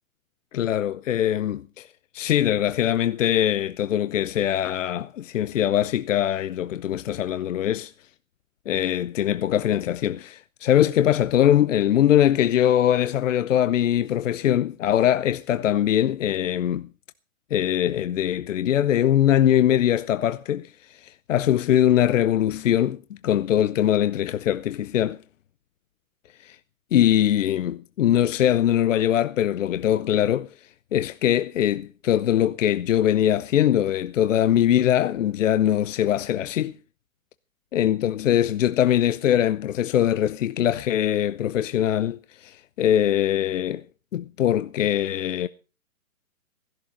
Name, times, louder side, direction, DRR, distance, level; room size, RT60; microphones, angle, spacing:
voice 1, 0.5-1.9 2.1-7.9 8.7-16.9 17.5-25.2 26.4-26.6 26.9-30.5 30.9-36.7 37.7-43.8 44.1-45.5, left 11 dB, 60° left, 0.8 m, -22 dB
16.5 x 12.0 x 5.1 m
hypercardioid pair, 140°, 42 cm